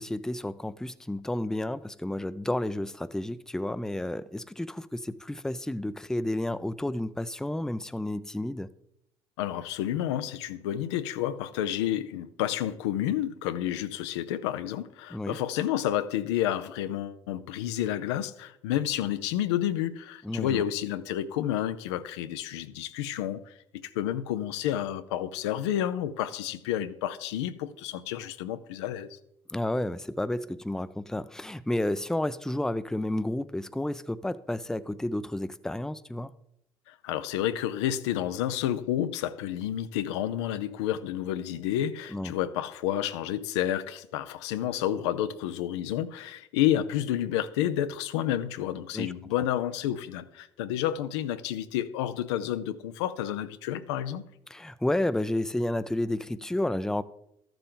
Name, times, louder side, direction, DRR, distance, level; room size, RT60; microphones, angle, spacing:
voice 1, 0.0-8.7 15.1-15.4 20.2-20.6 29.5-36.3 42.1-42.3 48.9-49.1 54.5-57.0, left 1 dB, 5° left, 0.5 m, -31 dB
voice 2, 9.4-29.2 36.9-54.2, left 11 dB, 80° left, 0.6 m, -30 dB
13.0 x 6.9 x 3.8 m
hypercardioid pair, 60°, 14 cm